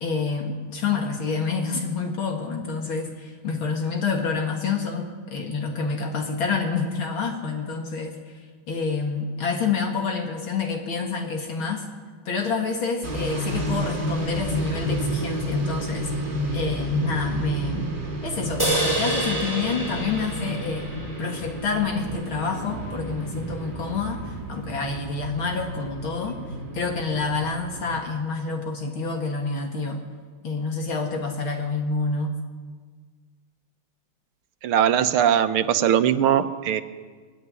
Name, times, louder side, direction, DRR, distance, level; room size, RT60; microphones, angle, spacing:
voice 1, 0.0-8.4 8.7-11.8 12.3-16.1 16.5-17.9 18.2-20.9 21.2-26.4 26.7-30.0 30.4-32.3, left 4 dB, 65° left, 2 dB, 2.7 m, -28 dB
sound 1, 13.0-28.0, equal, 25° right, 2.1 m, -31 dB
sound 2, 18.6-22.1, right 2 dB, 10° left, 4.8 m, -28 dB
voice 2, 34.6-36.8, right 9 dB, 80° right, 10 dB, 1.8 m, -20 dB
20.5 x 15.0 x 9.7 m, 1.5 s
omnidirectional pair, 2.4 m